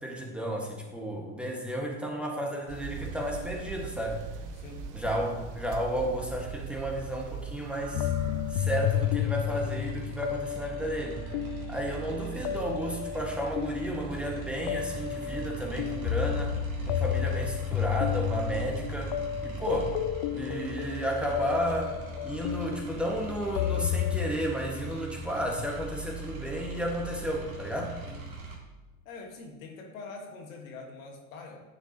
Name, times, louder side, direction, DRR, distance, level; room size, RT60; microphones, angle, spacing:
voice 1, 0.0-4.2 4.9-8.1 8.5-11.2 11.7-16.5 16.9-19.2 19.4-19.9 20.3-21.9 22.2-27.9, right 1 dB, 5° right, -1 dB, 1.8 m, -32 dB
sound 1, 2.7-8.7, right 6 dB, 45° right, 1.1 m, -40 dB
voice 2, 4.5-4.8 28.1-28.2 29.1-31.6, left 3 dB, 75° left, 1 dB, 1.9 m, -44 dB
sound 2, 7.9-24.3, left 12 dB, 45° left, 0.5 m, -32 dB
sound 3, 8.6-28.6, right 4 dB, 90° right, 2.2 m, -40 dB
9.9 x 6.9 x 3.0 m, 1.2 s
hypercardioid pair, 85°, 41 cm